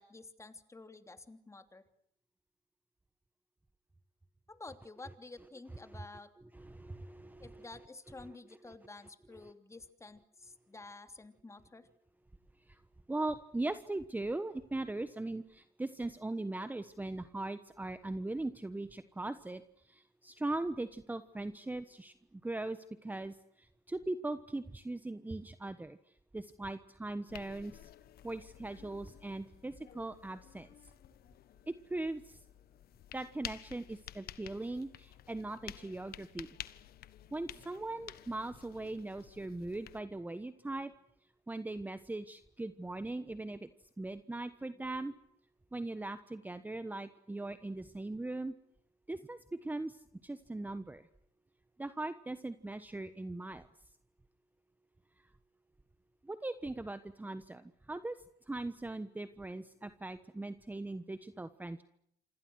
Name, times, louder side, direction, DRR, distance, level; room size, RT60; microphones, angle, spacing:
voice 1, 0.0-1.8 4.5-6.3 7.4-11.9, left 3 dB, 15° left, 8 dB, 3.0 m, -51 dB
voice 2, 6.5-7.6 12.7-12.8 13.1-26.0 26.3-27.9 28.2-30.7 31.7-32.4 33.1-36.5 37.3-40.9 41.5-43.7 44.0-45.1 45.7-48.5 49.1-51.1 51.8-53.7 56.2-61.8, right 2 dB, 10° right, 11 dB, 1.2 m, -40 dB
sound 1, 27.3-40.0, left 12 dB, 65° left, 1.4 m, -52 dB
27.5 x 26.5 x 6.4 m, 0.73 s
cardioid pair, 110°, 17 cm